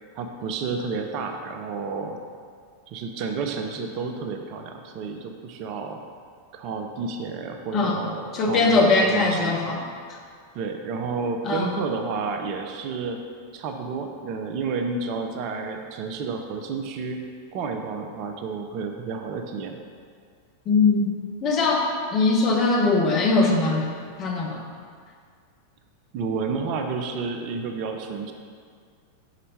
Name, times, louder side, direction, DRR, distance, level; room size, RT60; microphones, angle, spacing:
voice 1, 0.2-2.2 2.9-6.0 6.5-9.6 10.5-13.3 13.5-19.8 26.1-28.3, right 4 dB, 40° right, 4 dB, 0.5 m, -31 dB
voice 2, 8.3-9.8 10.1-10.2 11.4-11.8 20.7-21.1 21.4-21.8 22.1-23.9 24.2-24.6, left 3 dB, 30° left, 0 dB, 0.9 m, -21 dB
5.4 x 5.0 x 4.1 m, 2.1 s
figure-of-eight pair, 90°, 0 cm